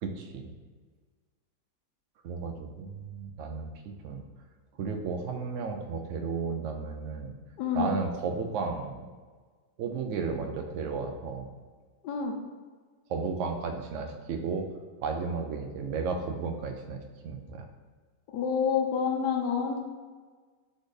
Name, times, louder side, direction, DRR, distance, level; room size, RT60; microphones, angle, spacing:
voice 1, 0.0-0.5 2.2-4.2 4.8-7.4 7.7-9.0 9.8-11.5 13.1-14.7 15.0-17.6, right 5 dB, 70° right, 4 dB, 0.7 m, -33 dB
voice 2, 7.6-7.9 12.0-12.3 18.3-19.8, left 6 dB, 85° left, 2 dB, 1.3 m, -28 dB
4.2 x 3.8 x 3.2 m, 1.5 s
omnidirectional pair, 1.8 m